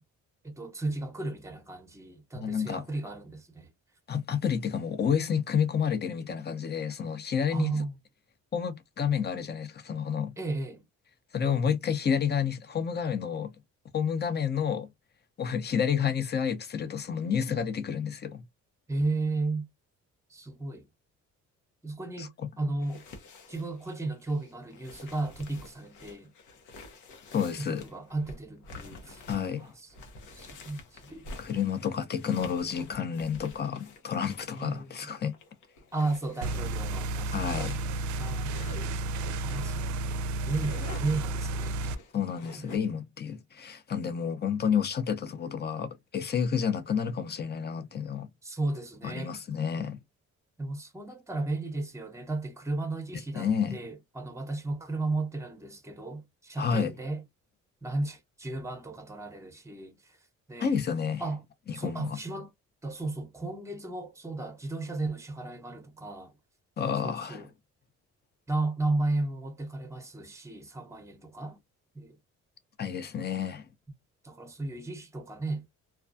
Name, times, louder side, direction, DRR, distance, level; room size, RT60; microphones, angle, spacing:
voice 1, 0.4-3.7 7.5-7.9 10.4-10.9 18.9-19.7 20.3-20.9 21.8-22.3 22.6-23.0 23.5-26.3 27.6-29.2 29.6-30.0 30.3-31.3 34.6-35.1 35.9-37.7 38.2-38.8 39.4-39.9 40.5-41.8 42.6-42.8 48.4-49.3 50.6-57.2 57.8-60.2 60.5-60.8 61.2-61.4 61.7-62.5 62.8-66.3 67.0-67.5 68.5-71.6 71.9-72.2 74.2-75.7, right 2 dB, 10° right, 0.8 m, -34 dB
voice 2, 2.3-2.8 4.1-7.7 8.5-10.3 11.3-13.5 13.9-14.9 15.4-18.4 22.2-22.5 27.3-27.9 29.3-29.7 31.4-35.3 37.3-37.8 42.1-48.3 49.0-50.0 53.3-53.8 56.6-56.9 60.6-61.2 61.7-62.2 66.8-67.5 72.8-73.7, left 7 dB, 35° left, 0.6 m, -30 dB
sound 1, 22.8-38.9 39.5-39.7 40.1-42.8, left 3 dB, 90° left, 0.8 m, -49 dB
sound 2, 36.4-42.0, right 2 dB, 75° right, 0.4 m, -32 dB
2.3 x 2.2 x 2.5 m
cardioid pair, 90°, 30 cm